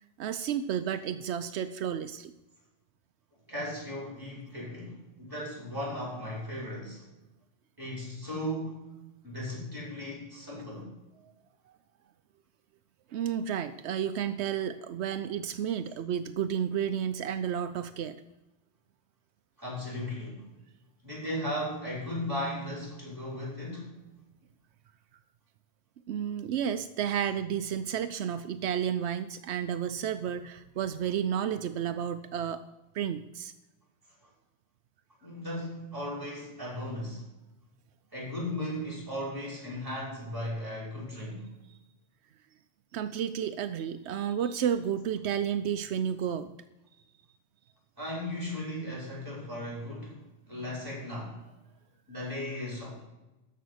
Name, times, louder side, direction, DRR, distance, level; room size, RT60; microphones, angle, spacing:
voice 1, 0.2-2.3 11.2-11.3 13.1-18.2 26.1-32.6 32.9-33.5 42.9-46.5, right 9 dB, 85° right, 10 dB, 0.9 m, -31 dB
voice 2, 3.5-7.0 7.8-8.9 9.2-10.9 19.6-20.4 21.0-24.0 35.2-37.3 38.1-41.6 48.0-51.4 52.1-53.0, left 1 dB, 20° right, -4 dB, 5.6 m, -36 dB
13.5 x 5.6 x 7.9 m, 1.0 s
omnidirectional pair, 1.1 m